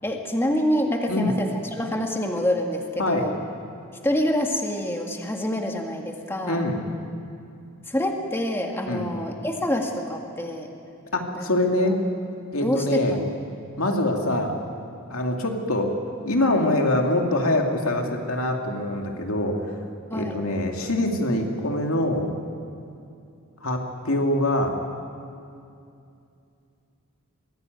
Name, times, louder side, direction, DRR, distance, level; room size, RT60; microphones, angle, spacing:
voice 1, 0.0-3.3 4.0-6.6 7.9-10.7 11.3-11.5 11.9-12.0 12.6-13.3 20.1-20.5, equal, 10° left, 2 dB, 1.7 m, -26 dB
voice 2, 6.5-6.8 8.9-9.0 11.1-12.0 12.5-13.2 13.8-14.6 15.1-15.9 16.2-19.6 20.1-22.3 23.6-24.7, left 1 dB, 80° left, 2 dB, 2.5 m, -24 dB
23.5 x 16.0 x 9.4 m, 2.6 s
head